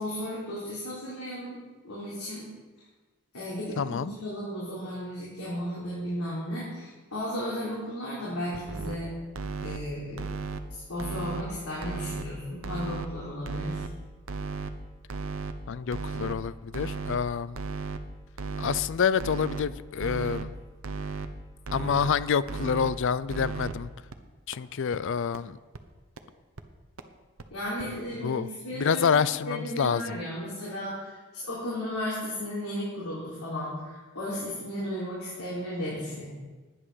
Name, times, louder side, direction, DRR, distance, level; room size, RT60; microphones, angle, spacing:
voice 1, 0.0-2.4 3.3-9.1 9.6-10.2 10.7-13.8 27.5-29.2 29.4-31.2 31.4-36.2, equal, 75° left, -8 dB, 3.8 m, -34 dB
voice 2, 3.8-4.1 15.7-17.6 18.6-20.5 21.7-23.9 24.5-25.6 28.2-28.5 28.7-30.2, left 6 dB, 55° left, 17 dB, 0.4 m, -27 dB
sound 1, 8.5-9.0 9.4-9.8 10.2-10.6 11.0-11.4 11.8-12.2 12.6-13.1 13.5-13.9 14.3-14.7 15.1-15.5 15.9-16.3 16.7-17.2 17.6-18.0 18.4-18.8 19.2-19.6 20.0-20.5 20.8-21.3 21.7-22.1 22.5-22.9 23.3-23.7 24.1-24.2 24.5-24.6 24.9-25.0 25.4-25.5 25.7-25.8 26.2-26.3 26.6-26.7 27.0-27.1 27.4-27.5 27.8-27.9, right 4 dB, 60° right, 0.9 m, -34 dB
11.0 x 9.9 x 6.3 m, 1.3 s
head